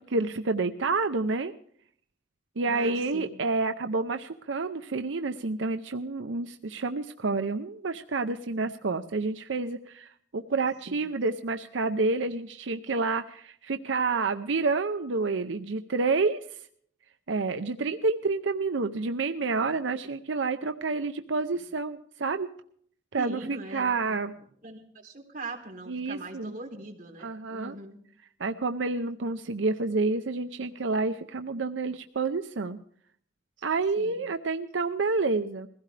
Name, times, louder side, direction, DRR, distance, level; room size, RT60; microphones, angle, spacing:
voice 1, 0.0-1.5 2.6-16.7 17.3-22.5 23.1-24.3 25.9-26.6 27.2-27.8 28.4-32.8 33.6-35.7, right 3 dB, 85° right, 8 dB, 0.7 m, -29 dB
voice 2, 2.7-3.3 10.9-11.0 23.2-24.3 24.6-28.0 34.0-34.2, right 2 dB, 45° right, 0 dB, 3.5 m, -41 dB
22.0 x 16.0 x 3.3 m, 0.62 s
head